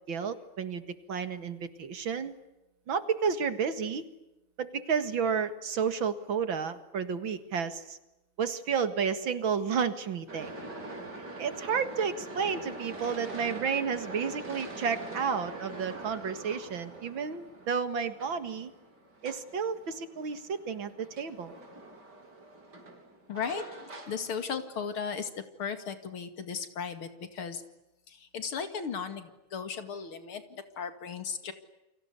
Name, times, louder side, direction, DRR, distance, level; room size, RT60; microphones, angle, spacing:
voice 1, 0.1-0.8 1.1-2.3 2.9-4.0 4.6-8.0 8.4-10.5 11.4-18.7 19.2-21.5, right 6 dB, 70° right, 11 dB, 2.6 m, -31 dB
sound 1, 10.3-25.0, right 2 dB, 50° right, 5.0 m, -44 dB
voice 2, 23.3-25.3 25.6-27.6 28.1-31.5, left 6 dB, 85° left, 9 dB, 3.0 m, -36 dB
29.5 x 24.5 x 8.3 m, 0.96 s
omnidirectional pair, 2.3 m